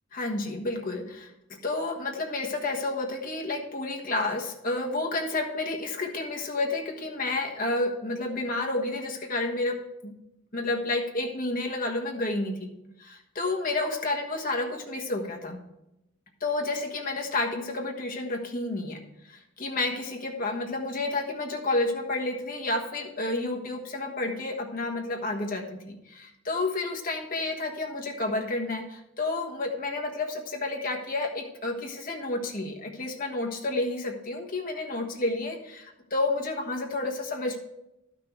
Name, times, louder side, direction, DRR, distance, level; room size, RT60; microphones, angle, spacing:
voice 1, 0.1-9.8 10.0-10.1 10.5-12.7 13.0-15.6 16.4-37.6, left 2 dB, 45° left, 1 dB, 1.4 m, -30 dB
12.0 x 6.1 x 4.5 m, 0.88 s
head